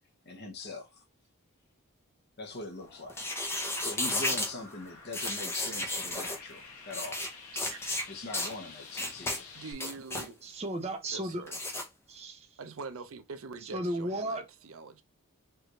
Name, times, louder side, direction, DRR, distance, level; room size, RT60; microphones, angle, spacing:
voice 1, 0.3-1.0 2.4-3.1 3.8-7.2 8.1-9.5, left 2 dB, 50° left, 0.9 m, -42 dB
sound 1, 2.8-9.7, left 4 dB, 85° left, 1.1 m, -50 dB
sound 2, 3.1-4.5 5.1-6.4 6.9-7.3 7.6-8.0 8.3-8.5 8.9-9.4 9.7-10.3 11.5-11.8, left 1 dB, 10° left, 0.7 m, -33 dB
voice 2, 9.5-10.4 11.1-11.6 12.6-15.0, right 4 dB, 65° right, 0.5 m, -44 dB
voice 3, 10.4-11.5 12.1-12.5 13.6-14.4, right 1 dB, 30° right, 0.7 m, -34 dB
4.6 x 2.6 x 3.0 m
head